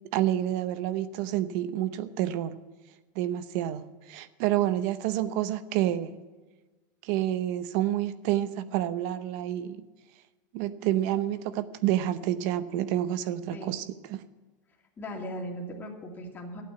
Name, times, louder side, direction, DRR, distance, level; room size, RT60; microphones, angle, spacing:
voice 1, 0.1-2.6 3.2-6.2 7.0-9.9 10.5-13.8 14.1-14.2, right 12 dB, 60° right, 0.8 m, -28 dB
voice 2, 15.0-16.6, equal, 20° left, 2.5 m, -38 dB
12.5 x 8.8 x 8.1 m
supercardioid pair, 145°, 10 cm